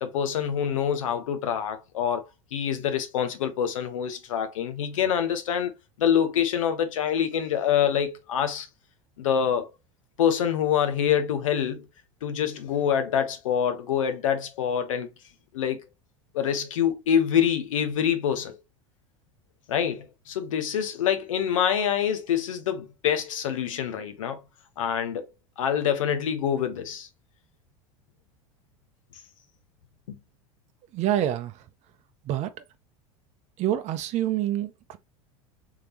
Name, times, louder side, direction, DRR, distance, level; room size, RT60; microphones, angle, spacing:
voice 1, 0.0-2.2 2.5-5.7 6.0-8.7 9.2-9.7 10.2-11.9 12.2-15.1 15.5-15.8 16.3-18.6 19.7-24.4 24.8-25.3 25.6-27.1 30.1-30.2, left 8 dB, 80° left, 0.9 m, -26 dB
voice 2, 30.9-31.7 32.2-32.6 33.6-35.0, right 12 dB, 45° right, 0.6 m, -27 dB
3.6 x 3.4 x 2.8 m
hypercardioid pair, 90°, 17 cm